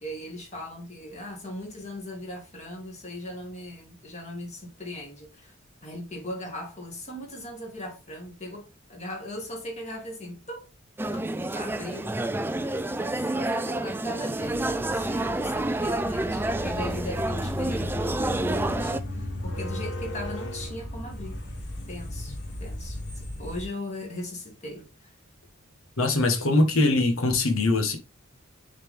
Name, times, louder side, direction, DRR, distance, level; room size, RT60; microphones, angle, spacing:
voice 1, 0.0-5.5 5.8-10.7 11.1-11.2 11.5-12.1 12.7-21.4 21.9-25.1, left 1 dB, 35° left, 2.0 m, -39 dB
sound 1, 11.0-19.0, right 2 dB, 10° right, 0.3 m, -29 dB
sound 2, 14.4-23.6, left 1 dB, 55° left, 1.4 m, -35 dB
voice 2, 26.0-28.0, left 2 dB, 80° left, 1.4 m, -22 dB
6.5 x 4.2 x 3.6 m
head